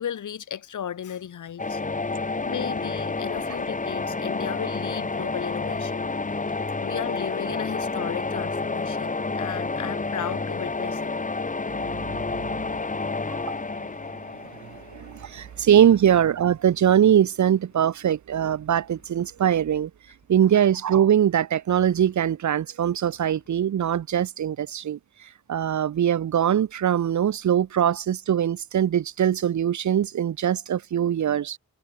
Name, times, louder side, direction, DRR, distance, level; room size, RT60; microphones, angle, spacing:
voice 1, 0.0-1.8 2.4-6.1 6.5-11.2, left 9 dB, 75° left, 0.6 m, -35 dB
sound 1, 1.6-15.4, left 3 dB, 25° left, 1.0 m, -29 dB
sound 2, 2.1-9.1, right 1 dB, 15° right, 4.5 m, -57 dB
voice 2, 14.6-19.9 20.3-31.6, right 9 dB, 65° right, 0.5 m, -22 dB
sound 3, 17.0-18.1 18.8-19.5 20.2-21.0 21.6-22.4 22.9-23.7, left 4 dB, 55° left, 7.8 m, -61 dB
wide cardioid pair, 125°, 31 cm